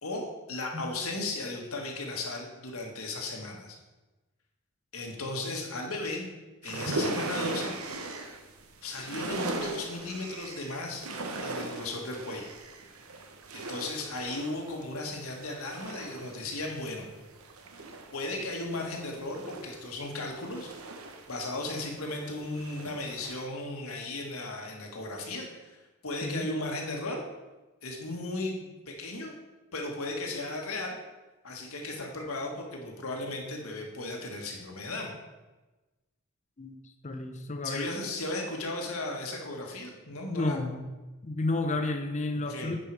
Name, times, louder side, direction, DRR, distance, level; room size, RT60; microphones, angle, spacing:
voice 1, 0.0-3.8 4.9-6.3 6.6-7.7 8.8-11.1 11.4-12.5 13.5-17.1 18.1-20.7 21.3-27.2 27.8-29.3 29.7-31.0 31.4-35.1 37.6-40.6 42.5-42.7, left 2 dB, 80° left, 1 dB, 1.7 m, -36 dB
sound 1, 6.6-23.4, right 2 dB, 90° right, 1.0 m, -39 dB
voice 2, 37.0-37.9 40.3-40.9 41.2-42.8, left 2 dB, 35° left, 6 dB, 0.7 m, -31 dB
9.1 x 5.6 x 4.8 m, 1.1 s
head